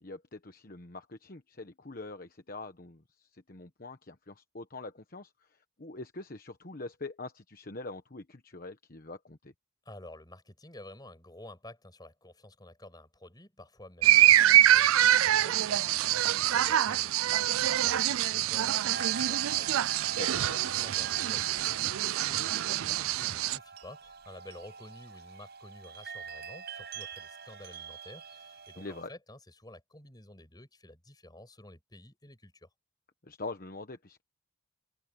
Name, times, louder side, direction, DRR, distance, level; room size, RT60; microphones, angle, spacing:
voice 1, 0.0-9.5 20.1-20.6 28.8-29.1 33.2-34.2, left 2 dB, 45° left, 1.2 m, -44 dB
voice 2, 9.8-32.7, left 1 dB, 20° left, 5.7 m, -51 dB
sound 1, 14.0-23.6, right 13 dB, 85° right, 0.4 m, -25 dB
sound 2, 18.9-29.0, right 5 dB, 50° right, 6.2 m, -45 dB
open air
head